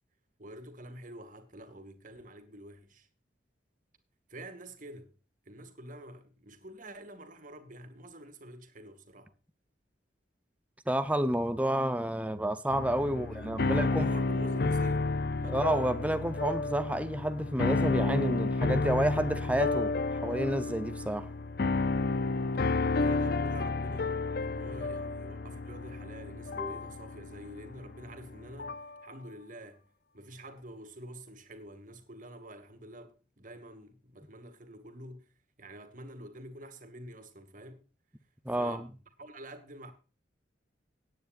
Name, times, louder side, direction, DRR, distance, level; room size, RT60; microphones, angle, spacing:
voice 1, 0.4-3.1 4.3-5.1 5.5-9.3 13.1-15.6 23.0-24.1 24.4-29.8 30.1-35.3 35.6-37.8 38.5-39.9, right 1 dB, 45° right, 2.2 m, -48 dB
voice 2, 10.9-14.1 15.5-19.9 20.2-21.3 26.6-26.8 38.5-38.8, right 1 dB, 10° right, 0.7 m, -30 dB
sound 1, 12.7-29.0, left 3 dB, 55° left, 0.6 m, -31 dB
18.5 x 9.6 x 2.6 m
head